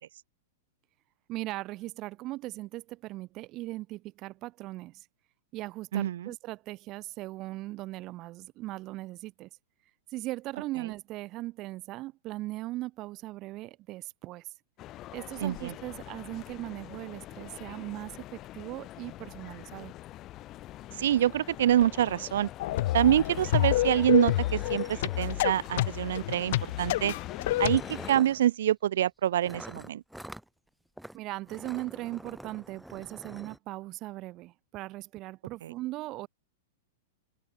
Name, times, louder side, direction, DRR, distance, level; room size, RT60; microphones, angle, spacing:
voice 1, 1.3-5.1 5.5-9.5 10.1-14.5 15.1-19.9 31.1-36.3, right 18 dB, 35° right, 2.2 m, -39 dB
voice 2, 5.9-6.3 15.4-15.7 21.0-22.5 22.9-27.1 27.6-27.8 28.1-30.0 35.6-35.7, right 11 dB, 75° right, 2.7 m, -26 dB
Crowd Noise Calming down, 14.8-28.1, left 15 dB, 30° left, 3.3 m, -44 dB
sound 1, 22.2-22.3 22.6-22.7 23.0-25.7 26.7-26.9 27.5-28.4 29.4-30.5 31.0-31.2 31.4-33.6, right 1 dB, ahead, 5.7 m, -46 dB
sound 2, 22.6-27.8, left 16 dB, 60° left, 1.4 m, -28 dB
hypercardioid pair, 135°, 0 cm